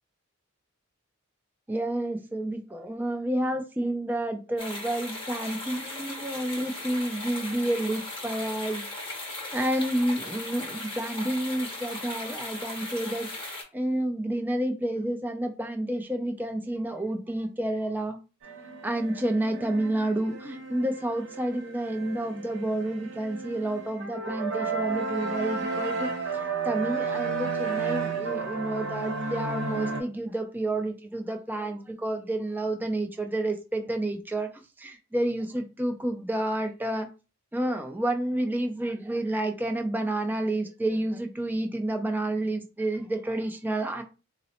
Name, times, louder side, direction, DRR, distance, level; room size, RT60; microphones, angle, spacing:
voice 1, 1.7-18.2 18.8-34.5 34.8-37.1 37.5-44.0, right 1 dB, 10° right, 0.3 m, -30 dB
sound 1, 4.6-13.6, left 2 dB, 25° left, 0.8 m, -37 dB
sound 2, 18.4-30.0, right 4 dB, 60° right, 0.9 m, -33 dB
3.8 x 2.0 x 2.8 m
head